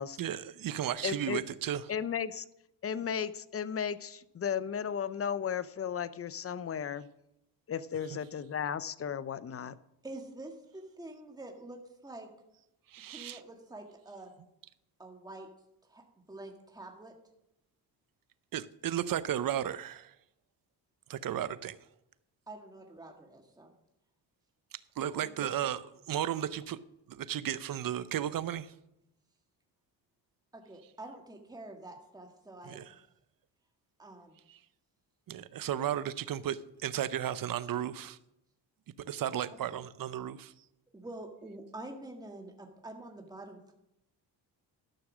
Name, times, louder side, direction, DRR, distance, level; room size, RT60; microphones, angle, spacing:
voice 1, 0.2-1.8 8.1-8.2 12.9-13.4 18.5-20.1 21.1-21.8 25.0-26.8 27.1-28.7 32.6-33.0 34.5-34.6 35.3-38.2 39.1-40.5, right 10 dB, 50° right, 0.7 m, -34 dB
voice 2, 1.0-1.4 1.9-2.4 2.8-7.1 7.7-9.7, left 7 dB, 35° left, 0.6 m, -35 dB
voice 3, 10.0-11.8 12.0-12.3 13.1-14.3 15.0-15.5 15.9-17.1 22.5-23.7 25.2-25.6 30.5-32.9 34.0-34.4 40.9-43.7, right 2 dB, 10° right, 1.8 m, -47 dB
13.0 x 6.4 x 6.2 m
cardioid pair, 85°, 42 cm